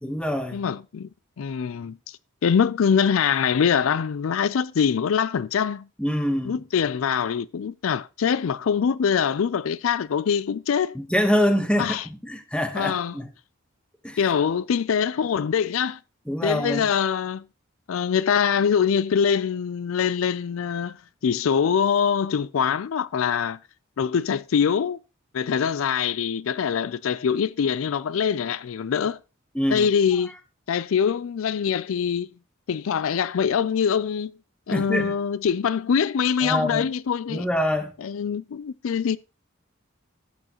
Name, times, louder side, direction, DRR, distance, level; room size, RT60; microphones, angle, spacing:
voice 1, 0.0-0.6 6.0-6.6 10.9-12.0 12.2-13.3 14.0-14.2 16.3-16.9 29.5-29.9 34.7-35.2 36.4-36.8 37.3-37.9, equal, 5° left, 1.1 m, -25 dB
voice 2, 0.5-1.1 1.4-5.9 6.4-11.0 11.8-12.1 12.7-13.2 14.2-16.0 16.4-17.5 17.9-21.0 21.2-23.6 24.0-25.0 25.3-29.2 29.7-30.3 30.7-32.3 32.7-34.4 34.7-37.5 38.0-39.2, left 7 dB, 75° left, 0.4 m, -24 dB
13.5 x 8.6 x 3.0 m
head